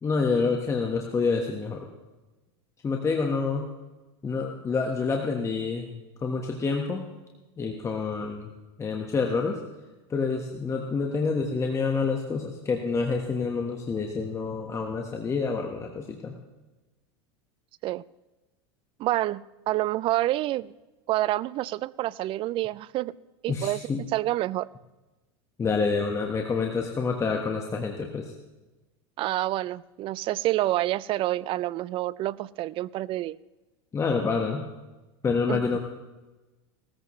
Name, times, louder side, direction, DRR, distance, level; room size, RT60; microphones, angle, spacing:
voice 1, 0.0-1.9 2.8-3.7 4.2-7.1 7.6-8.5 8.8-9.6 10.1-16.3 23.5-24.0 25.6-28.3 33.9-34.6 35.2-35.8, left 4 dB, 20° left, 2 dB, 1.4 m, -27 dB
voice 2, 19.0-20.7 21.1-23.1 23.4-24.7 29.2-33.4 35.5-35.8, right 16 dB, 40° right, 22 dB, 0.4 m, -28 dB
18.0 x 14.0 x 3.2 m, 1.1 s
hypercardioid pair, 110°, 14 cm